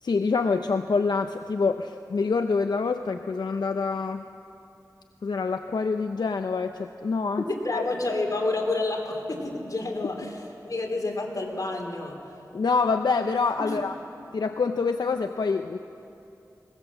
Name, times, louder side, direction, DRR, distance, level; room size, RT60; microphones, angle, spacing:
voice 1, 0.0-4.2 5.2-7.4 7.7-7.8 12.5-13.9 14.3-15.8, left 4 dB, 85° left, 7 dB, 0.6 m, -26 dB
voice 2, 7.5-12.2 13.6-13.8, left 2 dB, 55° left, 1 dB, 3.5 m, -29 dB
21.0 x 18.5 x 7.3 m, 2.6 s
wide cardioid pair, 65°, 7 cm